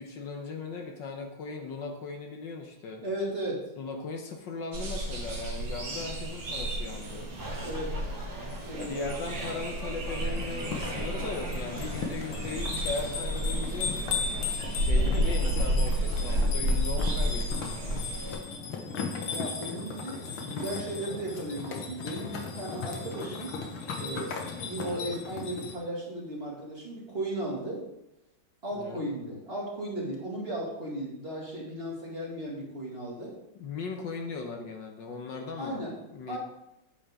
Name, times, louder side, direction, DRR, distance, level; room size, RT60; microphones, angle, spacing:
voice 1, 0.0-3.0 3.8-7.3 8.7-14.3 14.8-18.0 28.8-29.0 33.6-36.4, left 4 dB, 65° left, 3 dB, 1.6 m, -38 dB
voice 2, 3.0-3.6 7.6-8.0 8.6-9.1 15.0-15.4 19.3-23.6 24.0-27.8 28.6-33.3 35.6-36.0 36.3-36.4, right 1 dB, 30° right, -3 dB, 2.3 m, -36 dB
sound 1, 4.7-18.3, right 1 dB, 65° right, 2.6 m, -31 dB
sound 2, 7.4-16.4, equal, 10° right, 1.1 m, -42 dB
sound 3, 10.2-25.8, left 5 dB, 85° left, 2.0 m, -36 dB
9.9 x 8.5 x 3.6 m, 0.88 s
omnidirectional pair, 2.2 m